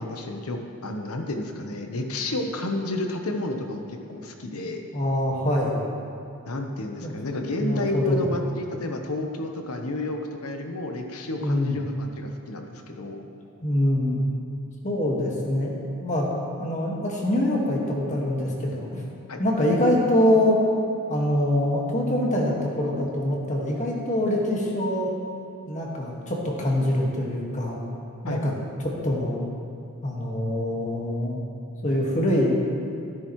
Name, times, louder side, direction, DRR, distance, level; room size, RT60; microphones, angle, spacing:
voice 1, 0.0-4.8 6.5-13.2 19.3-19.4 28.2-28.6, left 2 dB, 80° left, 4 dB, 1.1 m, -31 dB
voice 2, 4.9-5.8 7.0-7.1 7.6-8.2 11.4-11.8 13.6-14.2 14.8-16.3 16.6-19.0 19.4-20.6 21.1-25.1 25.7-27.8 28.2-28.5 28.8-29.4 30.0-31.4 31.8-32.7, left 1 dB, 35° left, -2 dB, 1.8 m, -24 dB
13.5 x 12.0 x 3.2 m, 2.6 s
head